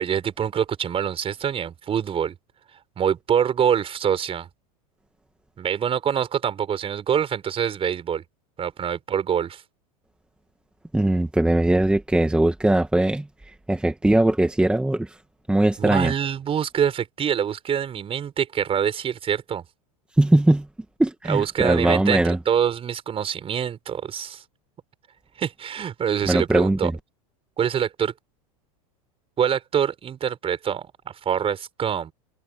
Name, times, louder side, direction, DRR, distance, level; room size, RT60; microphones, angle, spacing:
voice 1, 0.0-2.4 3.0-4.5 5.6-8.2 8.6-9.6 15.8-19.6 21.3-24.4 25.4-26.9 27.6-28.1 29.4-32.1, right 8 dB, 30° right, 5.1 m, -25 dB
voice 2, 10.9-13.3 13.7-15.2 15.5-16.1 20.2-20.7 21.0-22.4 26.3-26.9, right 1 dB, 5° right, 2.1 m, -20 dB
hypercardioid pair, 105°, 19 cm